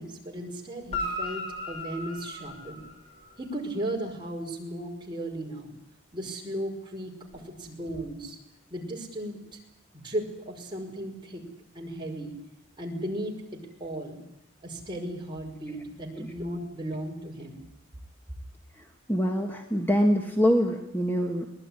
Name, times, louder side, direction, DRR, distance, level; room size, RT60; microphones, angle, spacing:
voice 1, 0.0-2.9 3.4-5.7 6.1-8.4 8.7-9.6 9.9-11.5 11.7-12.3 12.8-14.2 14.6-17.6, right 1 dB, 25° right, 0 dB, 5.4 m, -36 dB
Guitar, 0.8-3.4 7.3-7.4, left 1 dB, 30° left, 5.4 m, -36 dB
voice 2, 19.1-21.5, equal, 10° left, 3 dB, 1.8 m, -24 dB
23.5 x 19.5 x 9.9 m, 0.80 s
head